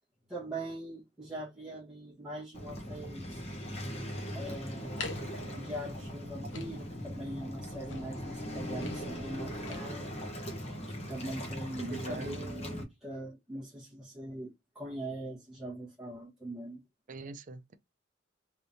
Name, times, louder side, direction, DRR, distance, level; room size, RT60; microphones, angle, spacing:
voice 1, 0.3-3.4 4.3-5.0 5.5-10.6 10.9-16.8, right 1 dB, 5° right, 1.3 m, -42 dB
Waves surf, 2.5-12.8, equal, 35° left, 1.1 m, -40 dB
sound 1, 3.2-9.8, left 3 dB, 70° left, 1.0 m, -47 dB
voice 2, 11.8-12.4 17.1-17.7, right 3 dB, 45° right, 0.4 m, -42 dB
3.7 x 3.4 x 2.7 m
head